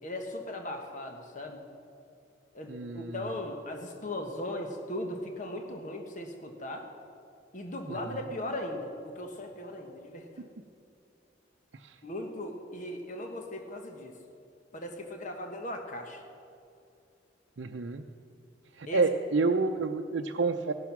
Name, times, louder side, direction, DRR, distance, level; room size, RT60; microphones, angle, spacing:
voice 1, 0.0-1.6 2.5-6.9 7.5-10.3 12.0-14.1 14.7-16.2 18.9-19.0, left 1 dB, 45° left, 3 dB, 1.3 m, -38 dB
voice 2, 2.7-3.2 7.9-8.2 11.7-12.0 17.6-18.1 18.7-20.7, right 3 dB, 75° right, 3 dB, 0.6 m, -29 dB
16.0 x 12.0 x 6.0 m, 2.5 s
head